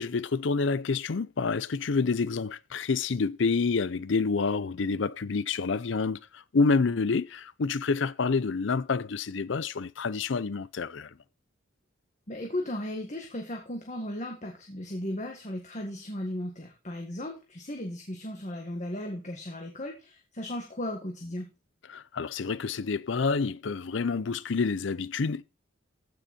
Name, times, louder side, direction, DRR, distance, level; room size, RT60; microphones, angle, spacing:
voice 1, 0.0-11.1 21.9-25.4, left 4 dB, 65° left, 0.5 m, -28 dB
voice 2, 12.3-21.5, left 1 dB, 40° left, 1.8 m, -36 dB
15.0 x 6.2 x 4.3 m
head